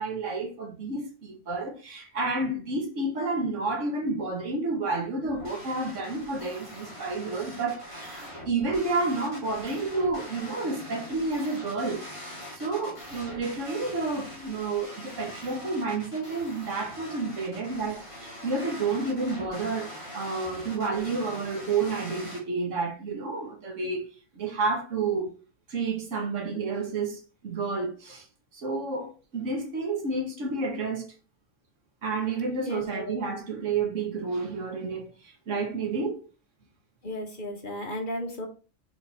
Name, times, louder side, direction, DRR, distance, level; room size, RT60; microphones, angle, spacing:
voice 1, 0.0-12.0 12.5-24.1 24.3-25.3 25.7-28.2 28.5-31.0 32.0-36.2, right 3 dB, 60° right, 1.7 m, -30 dB
sound 1, 5.2-22.4, equal, 20° left, 2.2 m, -43 dB
voice 2, 32.6-33.2 37.0-38.5, left 1 dB, 40° left, 1.2 m, -34 dB
6.3 x 3.7 x 4.2 m
omnidirectional pair, 1.4 m